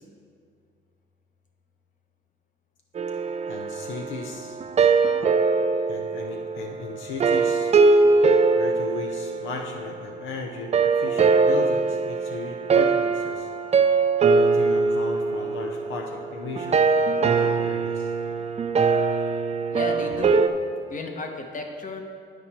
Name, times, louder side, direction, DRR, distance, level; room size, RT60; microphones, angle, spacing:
sound 1, 3.0-10.1 10.7-20.5, right 4 dB, 35° right, 0.4 m, -22 dB
voice 1, 3.5-4.6 5.9-7.7 8.5-13.5 13.9-14.0 14.4-18.1, left 4 dB, 75° left, 2 dB, 0.7 m, -36 dB
voice 2, 19.7-20.4 20.9-22.0, left 3 dB, 40° left, 3 dB, 1.1 m, -33 dB
11.0 x 4.5 x 4.2 m, 2.3 s
cardioid pair, 90°, 20 cm